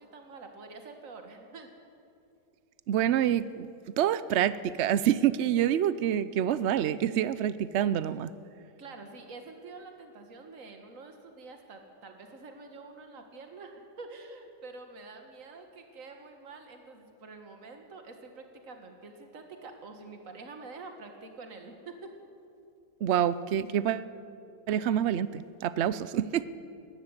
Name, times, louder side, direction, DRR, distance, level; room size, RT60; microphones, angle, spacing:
voice 1, 0.0-1.7 8.8-21.9, right 3 dB, 50° right, 4 dB, 2.1 m, -47 dB
voice 2, 2.9-3.7 4.0-8.3 23.0-24.1 24.7-26.4, right 10 dB, 80° right, 16 dB, 0.6 m, -27 dB
19.0 x 14.0 x 9.7 m, 2.5 s
omnidirectional pair, 1.8 m